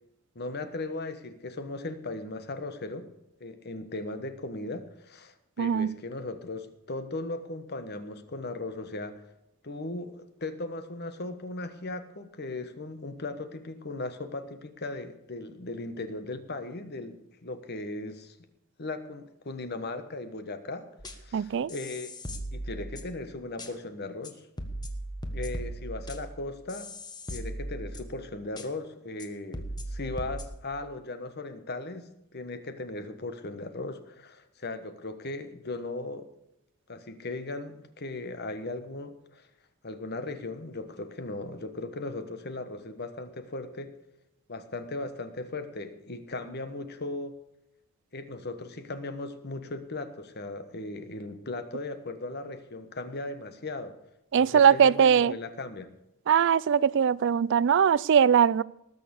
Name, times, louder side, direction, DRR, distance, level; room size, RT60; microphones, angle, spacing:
voice 1, 0.3-3.1 3.4-9.2 9.6-18.3 18.8-20.9 21.1-22.1 22.5-24.4 25.3-26.9 27.3-36.3 36.9-39.5 39.8-43.9 44.5-47.3 48.1-53.9 54.4-55.9, left 2 dB, 50° left, 9 dB, 1.3 m, -37 dB
voice 2, 5.6-5.9 21.3-21.7 54.3-55.3 56.3-58.6, right 7 dB, 60° right, 21 dB, 0.4 m, -21 dB
sound 1, 21.0-21.3 21.7-23.2 23.6-23.7 24.2-24.3 24.6-28.2 28.6-28.7 29.2-29.3 29.5-30.4, right 1 dB, 20° left, 1.3 m, -38 dB
19.0 x 6.6 x 7.0 m, 0.84 s
head